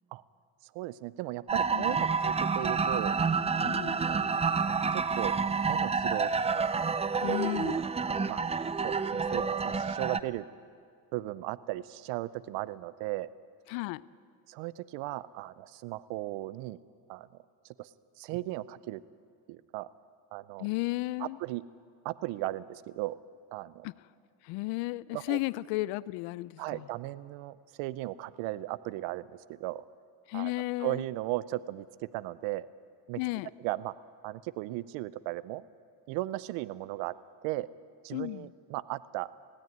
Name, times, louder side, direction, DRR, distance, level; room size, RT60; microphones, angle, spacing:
voice 1, 0.6-3.2 4.0-4.2 4.6-5.4 5.7-6.7 7.3-7.5 8.0-8.4 8.8-10.5 11.1-13.3 14.5-16.8 17.1-17.3 17.8-17.9 18.2-19.0 19.5-19.9 20.3-20.7 21.2-21.6 22.0-23.2 23.5-23.9 25.1-25.4 26.6-29.8 30.3-30.5 30.8-31.9 32.1-32.7 33.1-33.2 33.6-33.9 34.2-35.6 36.1-37.1 37.4-37.7 38.0-39.3, right 17 dB, 80° right, 17 dB, 0.7 m, -36 dB
sound 1, 1.5-10.2, right 5 dB, 15° right, 0.5 m, -29 dB
voice 2, 1.7-2.0 3.6-4.0 7.2-7.8 13.7-14.0 20.6-21.4 23.8-23.9 24.4-26.8 30.3-31.0 33.2-33.5 38.1-38.5, left 21 dB, 80° left, 19 dB, 0.6 m, -34 dB
19.0 x 17.0 x 9.3 m, 2.1 s
supercardioid pair, 95°, 45 cm